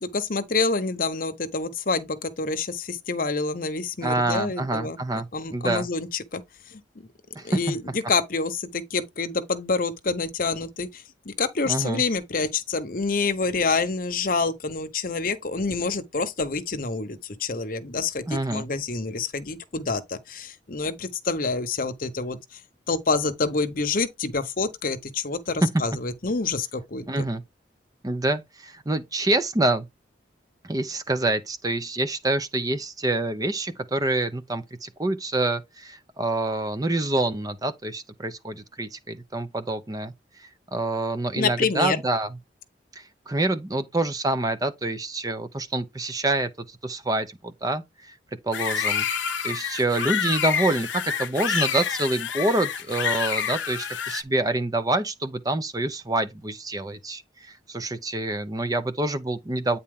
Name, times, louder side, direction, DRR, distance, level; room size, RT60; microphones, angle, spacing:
voice 1, 0.0-6.4 6.7-6.8 7.4-22.4 22.9-27.3 41.3-42.0, left 4 dB, 50° left, 0.9 m, -27 dB
voice 2, 4.0-5.3 5.5-5.9 7.4-7.8 11.7-12.0 18.3-18.7 25.6-25.8 27.1-27.4 28.0-29.9 30.6-40.1 40.4-42.3 43.0-48.1 48.4-49.1 49.4-59.8, right 2 dB, 20° right, 0.6 m, -26 dB
sound 1, 48.5-54.2, left 7 dB, 90° left, 0.8 m, -28 dB
8.8 x 4.1 x 3.7 m
head